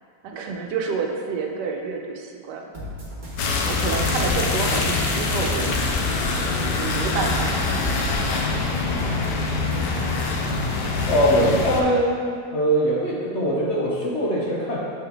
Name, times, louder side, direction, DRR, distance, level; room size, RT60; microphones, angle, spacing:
voice 1, 0.2-2.7 3.6-6.0 6.7-8.3, right 5 dB, 85° right, 2 dB, 1.3 m, -29 dB
sound 1, 2.7-10.4, left 1 dB, 40° right, 1.5 m, -34 dB
sound 2, 3.4-11.8, left 3 dB, 85° left, 1.3 m, -24 dB
voice 2, 11.1-12.1 12.5-14.8, equal, 60° left, -5 dB, 0.8 m, -21 dB
7.4 x 3.8 x 3.4 m, 2.2 s
omnidirectional pair, 1.8 m